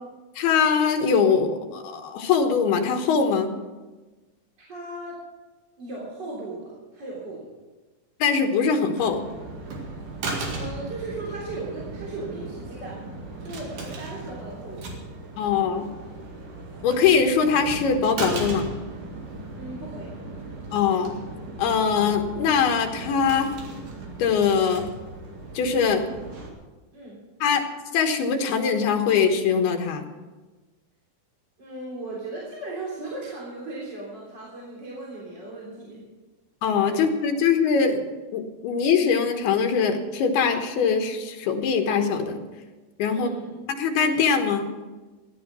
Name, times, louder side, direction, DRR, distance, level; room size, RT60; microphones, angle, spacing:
voice 1, 0.4-3.6 8.2-9.3 15.4-15.9 16.8-18.7 20.7-21.1 21.6-23.5 24.2-24.9 25.5-26.0 27.4-27.6 27.9-30.0 36.6-38.0 38.3-42.4 43.0-43.3 43.8-44.7, left 6 dB, 90° left, 5 dB, 3.3 m, -22 dB
voice 2, 4.6-5.2 5.8-7.5 10.5-13.0 13.4-14.9 19.5-20.2 26.9-27.2 31.6-36.0 36.9-37.0 43.1-43.5, right 2 dB, 30° right, -5 dB, 3.5 m, -37 dB
sound 1, 9.0-26.5, right 3 dB, 60° right, 3.5 m, -37 dB
15.0 x 11.5 x 6.1 m, 1.3 s
omnidirectional pair, 4.4 m